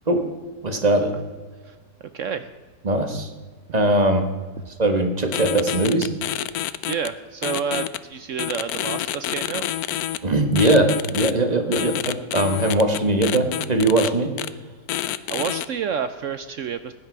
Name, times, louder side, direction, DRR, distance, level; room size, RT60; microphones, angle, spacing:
voice 1, 0.6-1.1 2.8-3.3 3.7-4.3 4.8-6.1 10.2-14.3, right 2 dB, 25° right, 6 dB, 1.1 m, -20 dB
voice 2, 2.1-2.5 6.9-9.7 11.8-11.9 15.3-16.9, right 7 dB, 70° right, 11 dB, 0.7 m, -29 dB
sound 1, 5.3-7.1 7.4-8.0 8.4-10.2 10.6-11.3 11.7-14.1 14.4-14.5 14.9-15.7, left 13 dB, 70° left, 1.0 m, -27 dB
16.0 x 10.0 x 4.7 m, 1.4 s
omnidirectional pair, 1.8 m